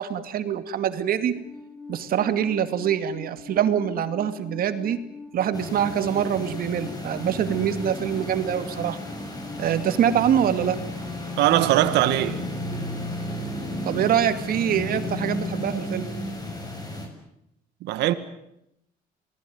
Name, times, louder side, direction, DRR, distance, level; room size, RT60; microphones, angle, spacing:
voice 1, 0.0-1.3 1.9-5.0 5.3-9.0 9.6-10.8 13.8-16.1, right 9 dB, 60° right, 2.5 m, -24 dB
Alarm, 1.3-10.3, left 4 dB, ahead, 4.1 m, -43 dB
sound 1, 5.5-17.1, left 1 dB, 20° left, 7.2 m, -33 dB
voice 2, 11.4-12.4 17.8-18.1, right 14 dB, 85° right, 2.0 m, -20 dB
28.5 x 19.5 x 9.6 m
cardioid pair, 110°, 17 cm